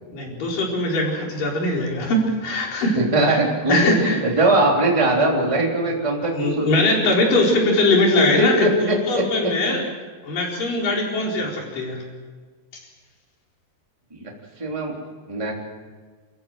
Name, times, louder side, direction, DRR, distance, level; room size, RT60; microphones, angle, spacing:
voice 1, 0.1-3.0 3.3-3.4 3.7-4.2 6.2-9.8 10.2-12.1, left 2 dB, 45° left, -1 dB, 5.7 m, -21 dB
voice 2, 2.9-6.8 8.2-9.7 11.2-11.3 14.1-14.3 14.6-14.9 15.3-15.5, right 2 dB, 10° right, -1 dB, 2.9 m, -21 dB
29.5 x 14.5 x 7.6 m, 1.4 s
omnidirectional pair, 5.4 m